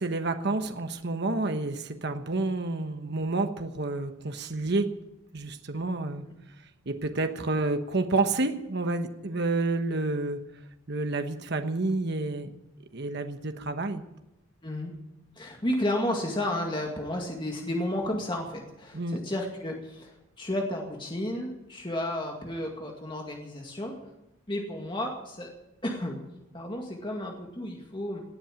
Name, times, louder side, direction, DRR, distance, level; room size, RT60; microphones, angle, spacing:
voice 1, 0.0-4.9 5.3-6.2 6.9-10.4 10.9-12.6 12.9-14.0 18.9-19.2, right 2 dB, 55° right, 7 dB, 1.2 m, -29 dB
voice 2, 15.4-24.0 24.5-25.5 25.8-26.2 26.5-28.2, left 1 dB, 25° left, 1 dB, 2.1 m, -32 dB
18.0 x 8.7 x 8.9 m, 0.91 s
head